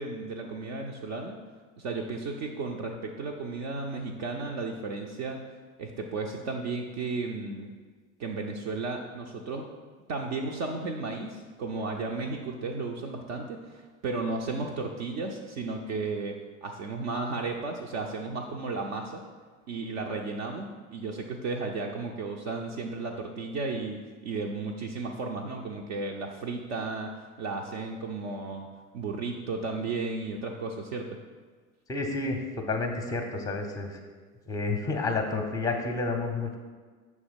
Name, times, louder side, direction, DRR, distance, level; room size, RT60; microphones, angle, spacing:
voice 1, 0.0-1.4 1.8-5.4 5.8-7.7 8.2-9.7 10.1-16.4 16.6-19.2 19.7-27.1 27.4-28.7 28.9-31.2, right 3 dB, 50° right, 1 dB, 0.6 m, -34 dB
voice 2, 31.9-32.4 32.7-34.0 34.5-36.6, left 3 dB, 10° left, 4 dB, 0.6 m, -30 dB
6.2 x 3.2 x 5.1 m, 1.5 s
figure-of-eight pair, 75°, 41 cm